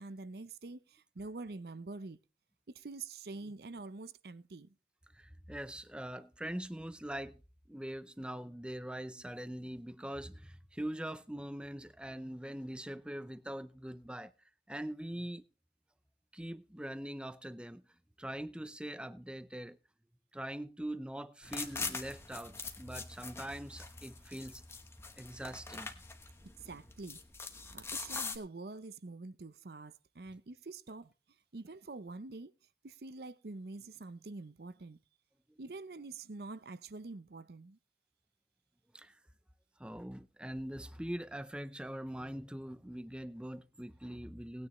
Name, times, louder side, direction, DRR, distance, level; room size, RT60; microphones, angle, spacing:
voice 1, 0.0-2.2 2.7-4.7 26.6-27.2 27.7-31.1 31.5-32.5 32.8-35.0 35.6-37.8, right 3 dB, 60° right, 0.6 m, -46 dB
voice 2, 5.1-7.4 7.7-14.3 14.7-15.4 16.3-17.8 18.2-19.8 20.3-24.6 25.2-25.9 38.9-39.2 39.8-44.7, right 1 dB, 5° right, 0.5 m, -42 dB
sound 1, 21.4-28.4, left 4 dB, 15° left, 1.0 m, -43 dB
18.5 x 9.6 x 3.1 m
head